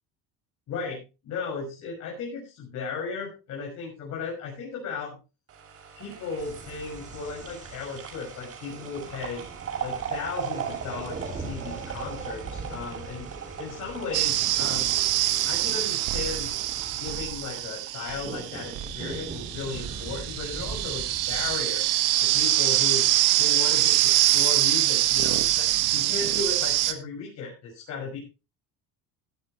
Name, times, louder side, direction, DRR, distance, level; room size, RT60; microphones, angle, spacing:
voice 1, 0.7-5.2 5.9-9.4 9.8-13.3 13.6-14.9 15.4-16.6 16.9-21.8 22.2-23.1 23.4-28.2, left 4 dB, 50° left, -2 dB, 6.6 m, -35 dB
sound 1, 5.5-18.7 19.1-19.2, right 7 dB, 45° right, 7.8 m, -39 dB
sound 2, 6.4-21.7, right 3 dB, 20° right, 2.9 m, -42 dB
sound 3, 14.1-26.9, right 14 dB, 70° right, 1.8 m, -24 dB
16.0 x 12.5 x 3.2 m, 0.30 s
cardioid pair, 140°, 33 cm